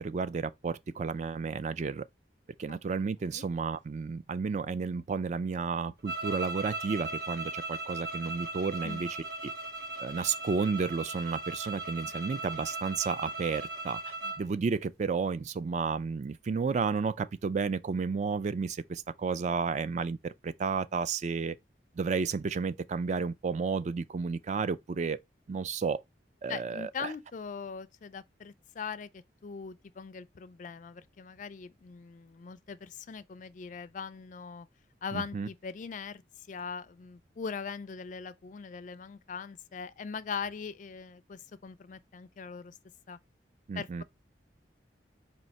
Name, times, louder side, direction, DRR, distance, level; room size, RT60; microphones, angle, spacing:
voice 1, 0.0-2.1 2.6-9.1 9.4-9.5 10.0-14.0 14.4-21.5 22.0-25.2 25.5-26.0 26.4-27.1 35.1-35.5 43.7-44.0, right 5 dB, 40° right, 0.3 m, -32 dB
sound 1, 6.0-14.5, right 2 dB, 60° right, 1.0 m, -38 dB
voice 2, 26.5-34.7 35.0-42.8 43.1-43.2 43.7-44.0, left 6 dB, 45° left, 0.3 m, -41 dB
4.4 x 2.7 x 4.0 m
head